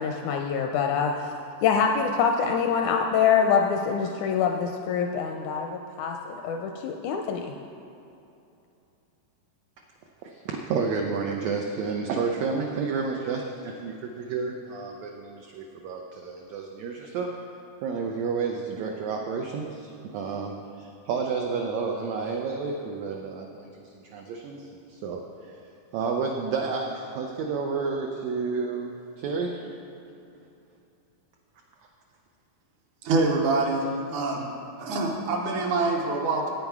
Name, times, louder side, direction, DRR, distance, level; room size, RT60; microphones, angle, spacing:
voice 1, 0.0-1.3 1.6-7.5, left 6 dB, 80° left, 3 dB, 1.7 m, -25 dB
voice 2, 10.2-17.3 17.8-25.6 25.9-29.7, right 5 dB, 90° right, 2 dB, 1.5 m, -31 dB
voice 3, 33.0-34.5 34.8-36.5, right 3 dB, 75° right, 0 dB, 2.2 m, -25 dB
9.2 x 9.0 x 4.7 m, 2.8 s
omnidirectional pair, 3.8 m